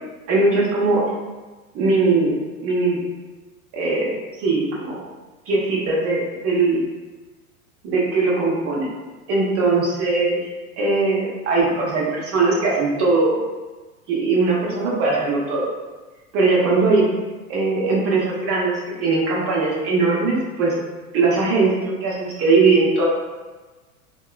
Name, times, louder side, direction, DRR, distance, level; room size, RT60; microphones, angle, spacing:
voice 1, 0.3-1.1 1.7-2.3 2.6-3.0 3.7-5.0 5.5-6.8 7.8-8.9 9.3-10.4 10.8-13.4 14.1-15.7 16.3-17.1 17.5-20.8 21.1-23.1, right 3 dB, 35° right, -4 dB, 0.8 m, -20 dB
2.9 x 2.2 x 2.2 m, 1.2 s
hypercardioid pair, 95°, 43 cm